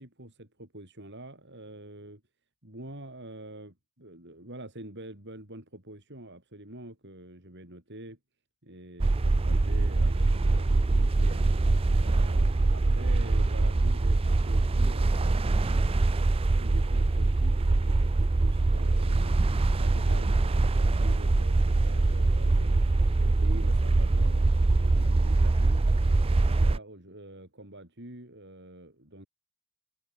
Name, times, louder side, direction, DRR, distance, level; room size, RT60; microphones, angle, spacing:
voice 1, 0.0-2.2 2.6-8.2 8.6-11.5 11.9-15.6 16.5-19.4 19.7-22.9 23.2-25.9 26.5-29.3, right 1 dB, 50° right, 6.1 m, -46 dB
sound 1, 9.0-26.8, right 2 dB, 25° right, 0.4 m, -23 dB
head